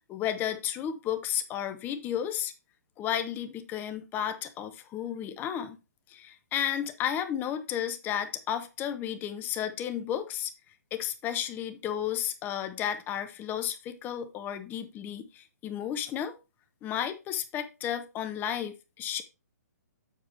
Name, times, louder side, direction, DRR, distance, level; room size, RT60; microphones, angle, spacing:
voice 1, 0.1-2.5 3.0-5.8 6.1-10.5 10.9-16.3 16.8-19.2, left 10 dB, 20° left, 0.9 m, -33 dB
7.5 x 5.9 x 3.3 m
hypercardioid pair, 135°, 9 cm